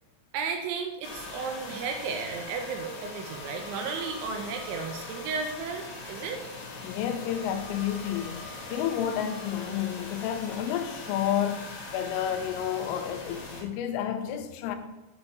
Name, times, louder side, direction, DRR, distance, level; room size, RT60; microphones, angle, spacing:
voice 1, 0.3-6.4, right 5 dB, 85° right, 4 dB, 2.8 m, -34 dB
jump Scare, 1.0-13.6, left 3 dB, 75° left, 2.1 m, -41 dB
voice 2, 6.8-11.7 11.9-14.8, left 9 dB, 90° left, 7 dB, 3.1 m, -30 dB
7.0 x 5.6 x 2.7 m, 1.0 s
omnidirectional pair, 5.6 m